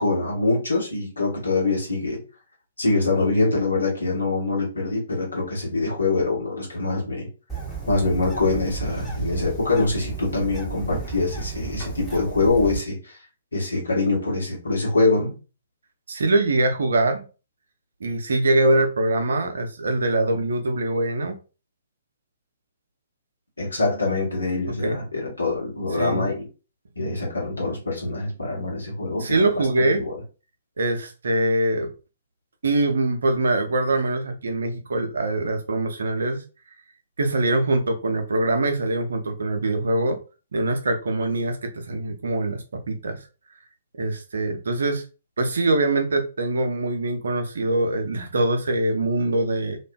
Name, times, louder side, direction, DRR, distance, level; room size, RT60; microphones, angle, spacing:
voice 1, 0.0-2.2 2.8-7.3 7.9-13.2 13.5-15.3 23.6-26.5 27.0-30.1, left 3 dB, 75° left, 1.1 m, -24 dB
Bird, 7.5-12.8, right 5 dB, 10° left, 1.0 m, -33 dB
voice 2, 16.1-17.2 18.0-21.3 24.8-25.0 26.0-26.3 29.2-30.0 30.8-31.9 32.6-36.4 37.2-40.2 40.5-43.2 44.0-45.0 45.4-49.8, right 2 dB, 65° right, 0.6 m, -23 dB
2.5 x 2.3 x 2.2 m
figure-of-eight pair, 125°, 0 cm